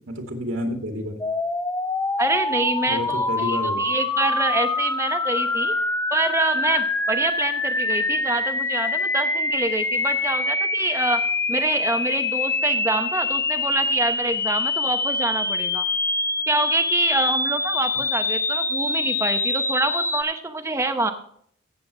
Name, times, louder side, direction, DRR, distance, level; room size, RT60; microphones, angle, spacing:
voice 1, 0.1-1.2 2.9-3.8, equal, 90° right, 2 dB, 2.4 m, -29 dB
sound 1, 1.2-20.2, left 3 dB, 15° left, 0.5 m, -25 dB
voice 2, 2.2-5.7 6.1-11.2 11.5-15.8 16.5-21.1, right 2 dB, 15° right, 7 dB, 0.8 m, -26 dB
15.5 x 7.6 x 3.3 m, 0.64 s
head